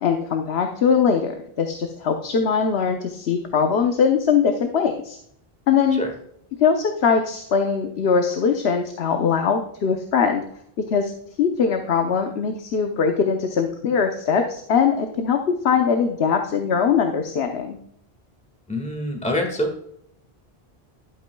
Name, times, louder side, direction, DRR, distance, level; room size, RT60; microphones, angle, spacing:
voice 1, 0.0-5.2 5.7-6.0 6.6-10.4 10.9-11.1 11.4-17.8, left 6 dB, 90° left, 4 dB, 1.1 m, -21 dB
voice 2, 18.7-20.0, left 1 dB, 5° left, 2 dB, 1.6 m, -26 dB
12.0 x 8.5 x 2.3 m, 0.69 s
omnidirectional pair, 1.0 m